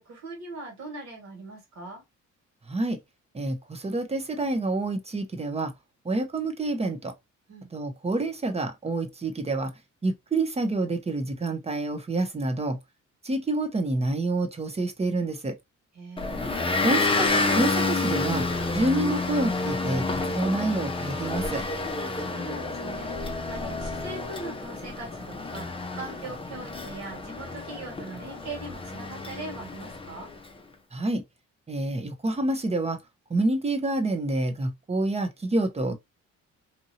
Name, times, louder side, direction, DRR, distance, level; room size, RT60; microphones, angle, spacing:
voice 1, 0.0-2.0 7.5-7.7 15.9-16.7 22.2-30.3, right 2 dB, 65° right, 1.8 m, -41 dB
voice 2, 2.7-3.0 3.3-5.7 6.0-7.1 7.7-9.7 10.0-12.8 13.2-15.6 16.8-17.3 17.5-18.5 18.7-21.6 30.9-31.2 31.7-33.0 33.3-36.0, right 2 dB, 20° right, 0.7 m, -28 dB
Motor vehicle (road) / Engine, 16.2-30.4, left 3 dB, 20° left, 0.6 m, -29 dB
2.8 x 2.6 x 2.7 m
cardioid pair, 90°, 30 cm